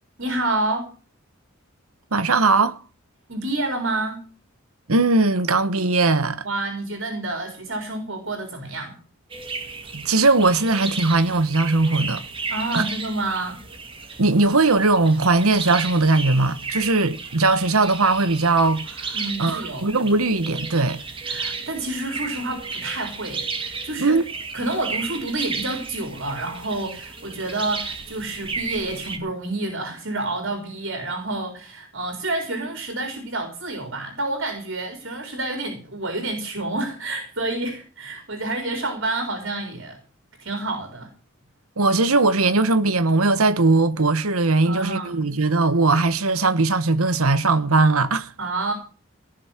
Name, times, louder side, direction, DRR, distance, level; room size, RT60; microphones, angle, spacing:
voice 1, 0.2-0.9 3.3-4.2 6.4-9.0 12.5-13.6 19.1-19.9 21.2-24.2 24.5-40.0 40.4-41.1 44.6-45.2 48.4-48.7, right 2 dB, 55° right, 4.2 m, -28 dB
voice 2, 2.1-2.8 4.9-6.4 9.9-12.2 12.7-12.8 14.2-21.0 24.0-24.2 41.8-48.3, right 3 dB, 90° right, 1.2 m, -19 dB
sound 1, 9.3-29.2, right 4 dB, 25° right, 2.2 m, -34 dB
18.0 x 6.5 x 9.0 m
head